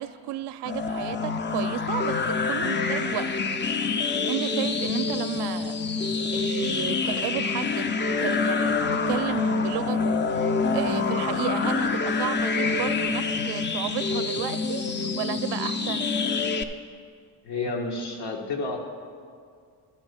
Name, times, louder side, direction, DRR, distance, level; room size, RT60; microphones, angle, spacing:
voice 1, 0.0-3.3 4.0-7.9 8.2-8.8 9.1-16.1, right 12 dB, 70° right, 11 dB, 0.5 m, -33 dB
sound 1, 0.7-16.6, left 4 dB, 25° left, 0.5 m, -26 dB
voice 2, 17.4-18.8, left 3 dB, 70° left, 1 dB, 1.6 m, -30 dB
12.0 x 4.2 x 8.1 m, 2.2 s
cardioid pair, 100°, 42 cm